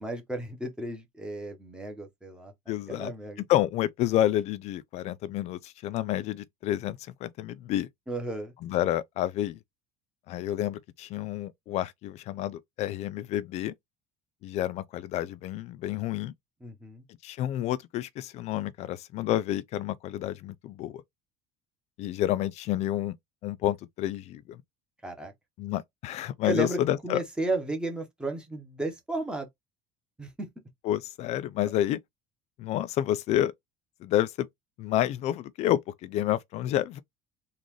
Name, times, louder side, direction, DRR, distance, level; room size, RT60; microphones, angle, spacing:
voice 1, 0.0-2.5 2.9-3.4 8.1-8.5 16.6-17.0 25.0-25.3 26.4-29.5 30.2-30.5, right 2 dB, 5° right, 0.9 m, -33 dB
voice 2, 2.7-3.1 3.4-7.9 8.6-9.6 10.3-13.7 14.4-16.3 17.2-21.0 22.0-23.2 23.4-24.6 25.6-27.2 30.8-32.0 32.6-33.5 34.0-34.5 34.8-37.0, left 13 dB, 45° left, 0.4 m, -29 dB
3.8 x 2.5 x 3.1 m
cardioid pair, 155°, 16 cm